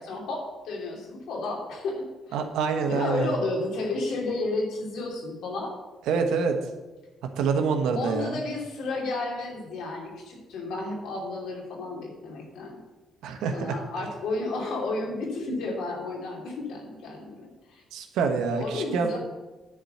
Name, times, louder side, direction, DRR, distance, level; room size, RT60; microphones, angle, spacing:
voice 1, 0.0-2.3 2.9-5.7 7.9-12.8 13.5-17.8 18.6-19.2, left 2 dB, 80° left, 0 dB, 2.8 m, -32 dB
voice 2, 2.3-3.4 6.1-6.6 7.4-8.4 13.2-13.7 17.9-19.2, right 5 dB, 90° right, 5 dB, 1.2 m, -26 dB
10.0 x 4.7 x 7.9 m, 1.2 s
cardioid pair, 90°, 0 cm